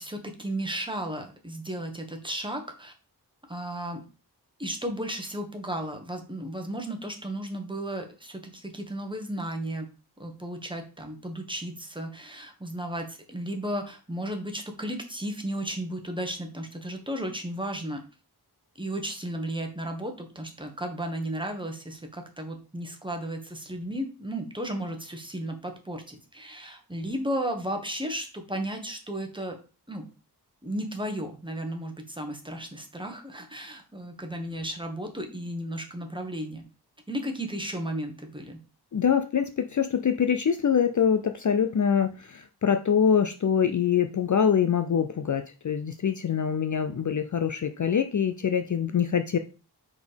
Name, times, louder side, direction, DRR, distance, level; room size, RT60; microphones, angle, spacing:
voice 1, 0.0-2.9 3.5-4.0 4.6-9.9 10.2-18.0 18.8-29.6 29.9-30.1 30.6-36.6 37.1-38.6, right 1 dB, 10° right, 3 dB, 1.3 m, -34 dB
voice 2, 38.9-49.4, left 7 dB, 50° left, 8 dB, 0.5 m, -24 dB
4.9 x 4.3 x 5.1 m, 0.35 s
wide cardioid pair, 85°, 40 cm